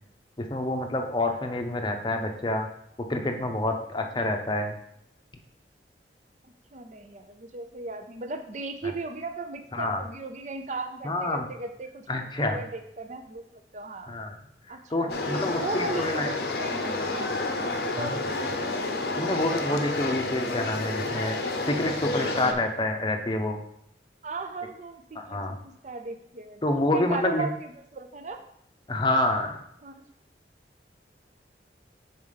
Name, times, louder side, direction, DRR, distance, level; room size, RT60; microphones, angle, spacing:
voice 1, 0.4-2.7 3.1-4.7 9.7-10.0 11.0-11.5 12.1-12.6 14.1-14.4 14.9-16.4 18.0-18.2 19.2-21.4 21.7-23.6 25.1-25.6 26.6-27.5 28.9-29.6, left 1 dB, 25° left, 4 dB, 0.7 m, -27 dB
voice 2, 6.7-12.0 12.4-14.1 14.7-17.3 17.6-18.4 24.2-26.6 26.9-28.4 29.8-30.1, right 3 dB, 40° right, 7 dB, 0.5 m, -37 dB
sound 1, 15.1-22.5, left 2 dB, 60° left, 0.7 m, -30 dB
4.9 x 4.3 x 5.7 m, 0.73 s
head